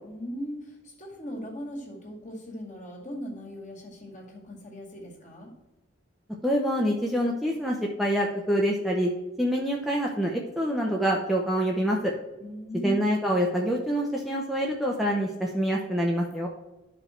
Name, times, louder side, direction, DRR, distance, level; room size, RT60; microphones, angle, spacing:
voice 1, 0.0-5.5 12.4-13.0, equal, 40° left, 0 dB, 2.1 m, -38 dB
voice 2, 6.4-9.1 9.4-12.1 12.8-16.5, equal, ahead, -2 dB, 0.7 m, -26 dB
12.0 x 5.1 x 4.4 m, 1.1 s
head